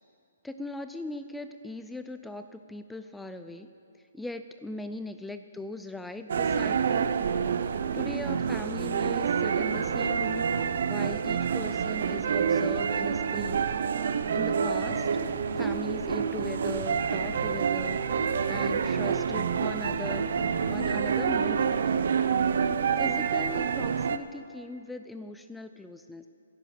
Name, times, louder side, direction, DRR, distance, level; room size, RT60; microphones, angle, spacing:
voice 1, 0.4-3.7 4.1-7.1 7.9-10.5 10.8-13.7 14.3-15.1 15.6-18.0 18.5-20.3 20.6-22.1 23.0-26.3, left 2 dB, 5° left, 9 dB, 0.3 m, -39 dB
sound 1, 6.3-24.2, right 6 dB, 60° right, 0.6 m, -27 dB
sound 2, 14.9-21.8, left 6 dB, 60° left, 0.6 m, -44 dB
11.0 x 9.0 x 8.2 m, 2.4 s
hypercardioid pair, 155°, 0 cm